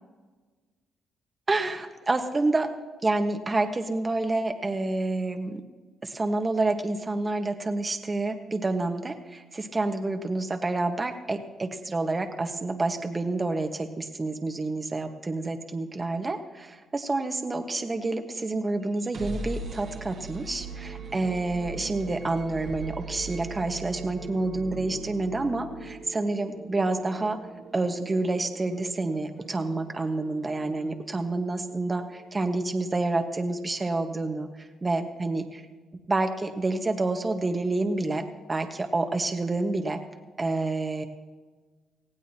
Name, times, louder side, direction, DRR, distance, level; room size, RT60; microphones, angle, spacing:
voice 1, 1.5-2.7 3.0-5.6 6.0-27.4 27.7-35.6 36.1-40.0 40.4-41.0, right 2 dB, 30° right, 5 dB, 1.4 m, -28 dB
sound 1, 18.9-32.7, right 4 dB, 60° right, 1.8 m, -41 dB
19.0 x 16.0 x 2.9 m, 1.4 s
supercardioid pair, 65°, 0 cm